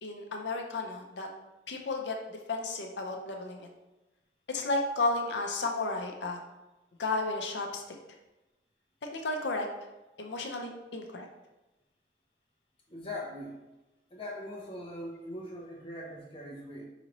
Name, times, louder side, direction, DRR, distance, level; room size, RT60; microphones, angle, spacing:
voice 1, 0.0-1.3 1.7-3.7 4.5-6.4 7.0-7.8 9.1-9.7 10.2-11.2, left 3 dB, 85° left, 2 dB, 0.6 m, -33 dB
voice 2, 12.9-13.6 14.1-16.9, left 1 dB, 30° left, -2 dB, 0.8 m, -41 dB
4.9 x 2.7 x 3.0 m, 1.0 s
head